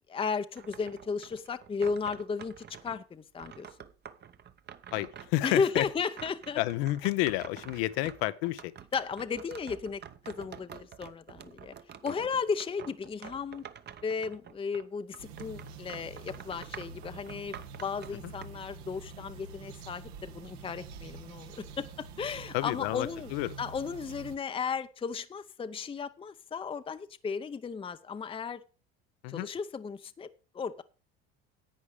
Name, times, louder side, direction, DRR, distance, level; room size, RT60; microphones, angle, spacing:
voice 1, 0.1-3.7 5.4-6.6 8.9-10.0 10.3-11.7 12.0-13.7 14.0-23.3 23.6-28.6 29.3-30.8, left 5 dB, 15° left, 0.6 m, -35 dB
sound 1, 0.6-3.0 3.4-14.9 15.1-18.5, right 8 dB, 35° right, 0.9 m, -48 dB
voice 2, 4.9-5.9 6.6-8.7 22.5-23.5 29.2-29.5, left 17 dB, 75° left, 0.8 m, -30 dB
sound 2, 15.2-24.4, right 5 dB, 80° right, 1.4 m, -47 dB
11.0 x 8.3 x 4.9 m
supercardioid pair, 90°, 31 cm